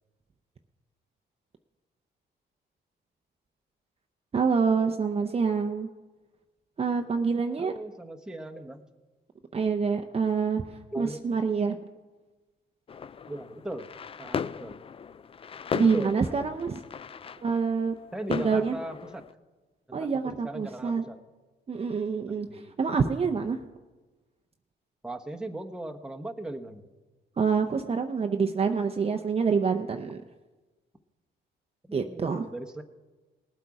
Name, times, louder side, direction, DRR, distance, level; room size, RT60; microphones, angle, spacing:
voice 1, 4.3-5.9 6.8-7.7 9.5-10.6 11.0-11.8 15.7-16.8 17.4-17.9 18.3-18.7 19.9-21.0 21.7-22.5 22.8-23.6 27.4-30.2 31.9-32.4, right 5 dB, 30° right, 4 dB, 0.6 m, -26 dB
voice 2, 7.6-8.8 10.9-11.2 13.3-13.9 14.2-14.8 15.8-16.2 18.1-19.2 20.0-20.1 20.4-21.2 22.3-22.8 25.0-26.9 31.8-32.8, right 1 dB, 5° right, 3 dB, 1.0 m, -38 dB
sound 1, 12.9-19.3, left 7 dB, 30° left, 0.3 m, -37 dB
19.0 x 8.0 x 4.8 m, 1.3 s
cardioid pair, 90°, 20 cm